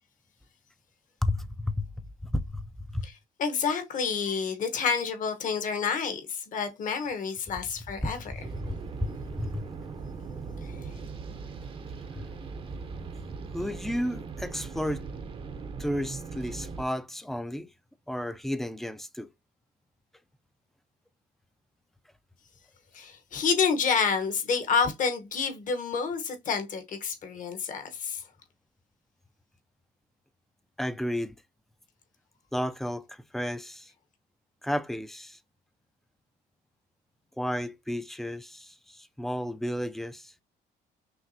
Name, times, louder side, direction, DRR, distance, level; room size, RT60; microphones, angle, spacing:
voice 1, 1.2-3.1 8.0-9.7 12.1-12.3 13.5-15.1 15.8-17.7 18.1-19.3 30.8-31.4 32.5-33.9 34.6-35.4 37.4-40.3, left 1 dB, ahead, 0.3 m, -33 dB
voice 2, 3.4-8.2 10.6-10.7 22.9-28.2, left 6 dB, 50° left, 1.0 m, -29 dB
sound 1, 8.4-16.8, right 5 dB, 30° right, 0.6 m, -39 dB
5.9 x 2.4 x 2.6 m
cardioid pair, 110°, 17 cm